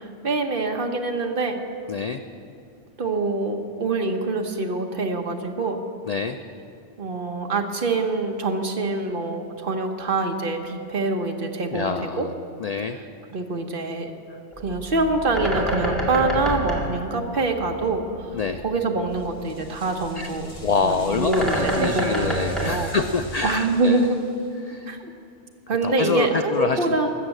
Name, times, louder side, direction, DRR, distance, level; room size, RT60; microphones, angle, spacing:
voice 1, 0.0-1.6 3.0-5.8 7.0-12.3 13.3-14.1 14.6-18.1 18.6-20.5 20.8-22.9 23.4-24.2 24.9-25.1 25.7-27.1, right 3 dB, 50° right, 4 dB, 1.1 m, -25 dB
voice 2, 1.9-2.2 6.1-6.4 11.7-12.3 12.6-13.0 14.3-14.4 18.3-18.6 20.2-20.3 20.6-24.0 24.6-24.9 25.8-27.0, left 5 dB, 75° left, 7 dB, 0.3 m, -26 dB
Bird, 14.5-23.7, right 1 dB, ahead, 2.0 m, -29 dB
sound 1, 19.1-24.7, left 2 dB, 30° left, 1.3 m, -46 dB
13.5 x 7.2 x 7.8 m, 2.4 s
omnidirectional pair, 1.2 m